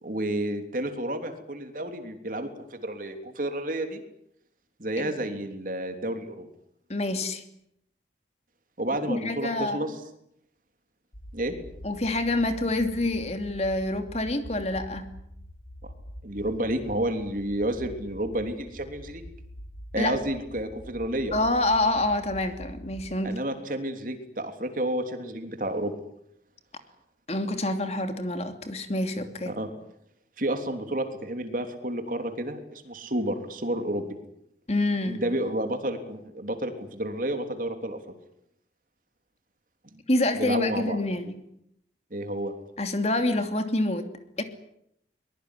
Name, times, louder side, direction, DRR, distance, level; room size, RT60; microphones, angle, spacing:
voice 1, 0.0-4.0 4.8-6.5 8.8-9.9 11.3-11.5 16.2-19.2 19.9-21.3 23.2-25.9 29.4-29.7 30.4-34.1 35.0-38.0 39.9-40.0 40.3-41.0 42.1-42.5, right 1 dB, 50° right, 7 dB, 3.3 m, -30 dB
voice 2, 6.9-7.4 9.1-9.9 11.8-15.1 20.0-20.2 21.3-23.4 27.3-29.5 34.7-35.2 40.1-41.4 42.8-44.1 44.4-44.5, left 2 dB, 35° left, 7 dB, 2.9 m, -27 dB
sound 1, 11.1-23.1, equal, 85° left, 3.5 m, -45 dB
23.0 x 21.5 x 9.9 m, 0.76 s
head